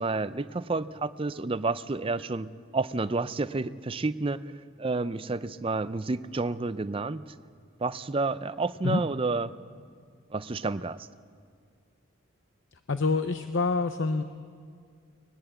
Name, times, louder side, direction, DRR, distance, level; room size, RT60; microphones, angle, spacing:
voice 1, 0.0-4.4 4.8-7.3 7.8-9.5 10.3-11.0, right 3 dB, 25° right, 14 dB, 0.5 m, -30 dB
voice 2, 12.7-14.2, left 3 dB, 60° left, 9 dB, 0.7 m, -27 dB
20.5 x 20.0 x 7.9 m, 2.1 s
head